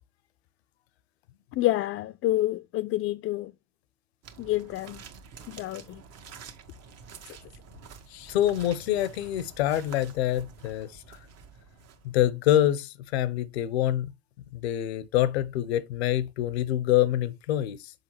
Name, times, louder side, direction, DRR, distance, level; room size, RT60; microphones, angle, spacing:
voice 1, 1.5-3.5 4.4-5.0 5.5-6.0, left 15 dB, 45° left, 0.4 m, -28 dB
sound 1, 4.2-12.3, right 6 dB, 55° right, 1.3 m, -48 dB
voice 2, 8.1-11.2 12.0-14.1 14.5-17.9, left 12 dB, 85° left, 0.6 m, -26 dB
6.4 x 5.0 x 3.0 m
hypercardioid pair, 70°, 31 cm